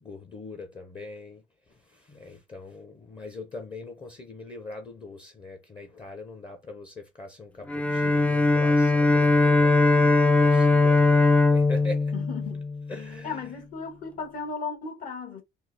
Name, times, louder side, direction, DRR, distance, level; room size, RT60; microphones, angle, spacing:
voice 1, 0.0-12.1 12.9-13.4, left 2 dB, 30° left, 0.7 m, -42 dB
Bowed string instrument, 7.7-13.1, left 3 dB, 10° left, 0.3 m, -20 dB
voice 2, 12.1-12.6 13.2-15.4, left 5 dB, 55° left, 1.3 m, -36 dB
4.4 x 2.0 x 3.3 m
cardioid pair, 110°, 17 cm